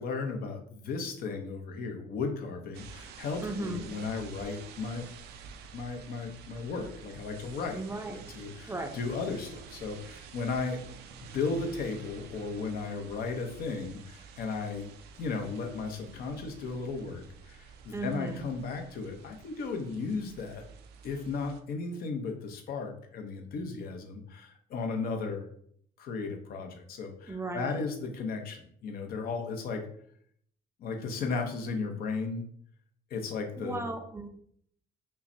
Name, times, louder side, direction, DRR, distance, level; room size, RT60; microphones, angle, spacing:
voice 1, 0.0-5.1 5.7-7.8 8.3-10.8 11.2-14.9 15.2-20.6 21.0-25.5 26.0-29.9 30.8-32.4 33.1-33.9, left 4 dB, 65° left, 4 dB, 0.8 m, -35 dB
sound 1, 2.7-21.6, right 6 dB, 75° right, 0.4 m, -49 dB
voice 2, 3.4-3.8 7.7-8.2 8.7-8.9 17.9-18.4 27.3-27.8 33.6-34.3, right 2 dB, 15° right, 5 dB, 0.5 m, -36 dB
5.5 x 2.2 x 2.7 m, 0.64 s
cardioid pair, 110°, 17 cm